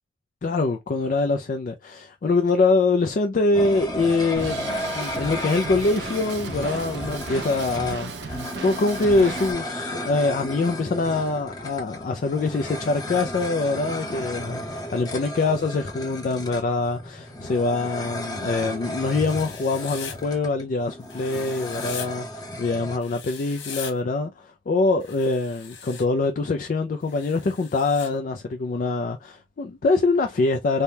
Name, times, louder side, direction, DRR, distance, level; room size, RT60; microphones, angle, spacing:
voice 1, 0.4-30.8, left 3 dB, 50° left, 0.4 m, -24 dB
sound 1, 3.5-23.0, left 1 dB, 20° left, 0.7 m, -34 dB
Drum kit, 4.3-9.5, right 4 dB, 75° right, 0.6 m, -35 dB
Writing, 19.1-20.2 21.1-22.1 23.0-23.9 25.0-26.0 27.1-28.1, left 7 dB, 90° left, 0.8 m, -39 dB
3.4 x 2.2 x 2.7 m
head